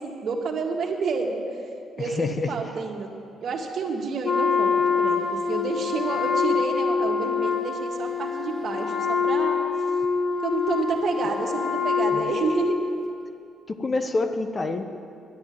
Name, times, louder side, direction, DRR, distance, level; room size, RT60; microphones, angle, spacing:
voice 1, 0.0-1.4 2.0-3.1 3.4-9.6 10.4-12.8, right 4 dB, 60° right, 1 dB, 1.9 m, -29 dB
voice 2, 2.0-2.6 12.1-12.2 13.7-14.8, left 3 dB, 35° left, 7 dB, 0.9 m, -27 dB
Wind instrument woodwind instrument, 4.2-13.1, left 5 dB, 50° left, 1.2 m, -25 dB
11.0 x 10.5 x 9.2 m, 2.5 s
cardioid pair, 90°, 0 cm